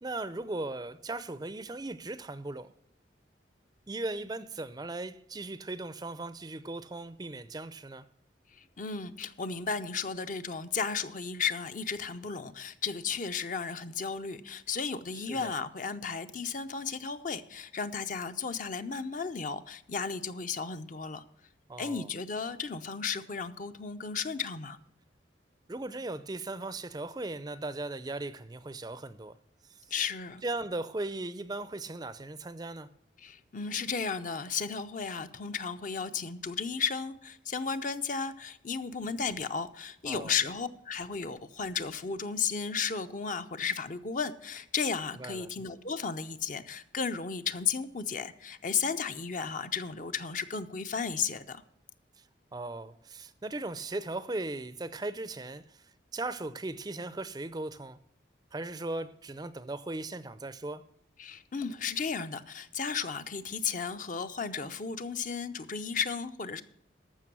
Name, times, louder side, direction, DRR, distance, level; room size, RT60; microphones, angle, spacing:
voice 1, 0.0-2.7 3.9-8.1 15.1-15.5 21.7-22.1 25.7-29.4 29.8-29.9 30.4-32.9 40.1-40.3 45.2-45.5 52.2-52.3 52.5-58.0 58.5-60.8, right 2 dB, 20° right, 0.5 m, -38 dB
voice 2, 8.5-21.2 21.8-24.8 29.9-30.4 33.2-51.6 61.2-66.6, left 5 dB, 45° left, 0.6 m, -34 dB
14.0 x 6.1 x 6.1 m
head